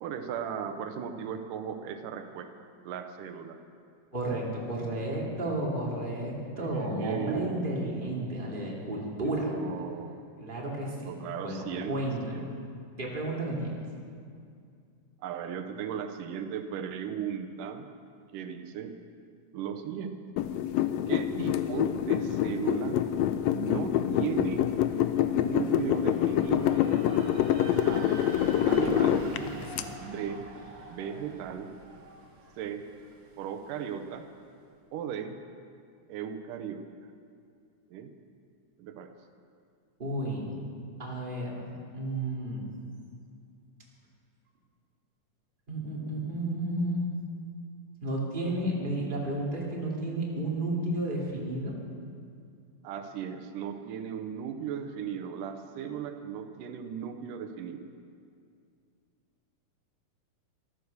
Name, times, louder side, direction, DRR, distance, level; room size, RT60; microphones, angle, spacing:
voice 1, 0.0-2.5 2.8-3.6 6.6-8.0 9.5-10.2 10.8-12.5 15.2-17.9 18.3-19.0 19.5-20.2 21.1-23.0 23.5-24.7 25.2-26.9 27.9-28.1 28.7-29.3 30.0-30.4 30.9-31.7 32.6-32.9 33.4-34.3 34.9-35.4 36.1-36.9 37.9-38.1 38.8-39.1 52.8-57.8, right 8 dB, 90° right, 7 dB, 2.5 m, -36 dB
voice 2, 4.1-9.5 10.4-12.5 13.0-13.8 40.0-40.5 41.0-42.6 45.7-47.2 48.0-51.7, right 1 dB, 15° right, -3 dB, 2.5 m, -32 dB
sound 1, 20.4-29.8, left 11 dB, 85° left, 1.5 m, -26 dB
sound 2, 24.3-34.2, right 3 dB, 45° right, 1.7 m, -46 dB
14.0 x 13.0 x 6.6 m, 2.3 s
omnidirectional pair, 3.6 m